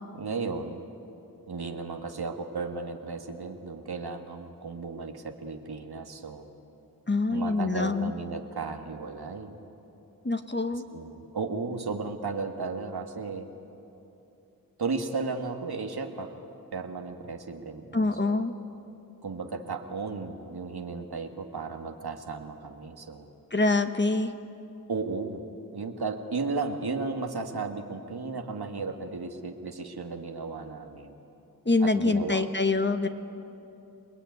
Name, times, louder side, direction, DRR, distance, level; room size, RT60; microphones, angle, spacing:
voice 1, 0.1-0.8 1.5-6.5 7.3-9.6 10.8-13.5 14.8-16.3 16.7-18.4 19.2-23.3 24.9-25.4 25.7-31.2 31.8-32.5, right 4 dB, 85° right, 5 dB, 1.8 m, -34 dB
voice 2, 7.1-8.1 10.2-10.8 17.9-18.5 23.5-24.3 31.6-33.1, left 3 dB, 30° left, 8 dB, 1.4 m, -25 dB
28.0 x 20.0 x 9.4 m, 2.9 s
wide cardioid pair, 60°, 37 cm